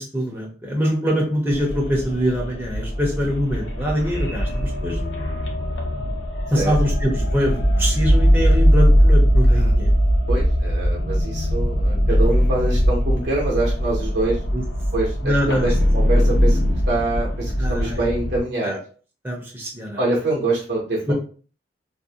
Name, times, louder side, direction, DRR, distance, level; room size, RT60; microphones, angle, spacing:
voice 1, 0.0-5.4 6.5-9.9 14.5-14.6 15.2-15.7 16.1-16.2 17.6-18.1 18.6-18.8 19.2-20.0 21.1-21.2, equal, 10° right, -2 dB, 0.5 m, -24 dB
sound 1, 1.5-18.4, equal, 75° left, 0.6 m, -20 dB
voice 2, 10.3-14.4 14.9-16.6 16.9-18.7 20.0-21.1, right 2 dB, 65° right, -3 dB, 0.6 m, -25 dB
2.4 x 2.0 x 2.7 m, 0.40 s
head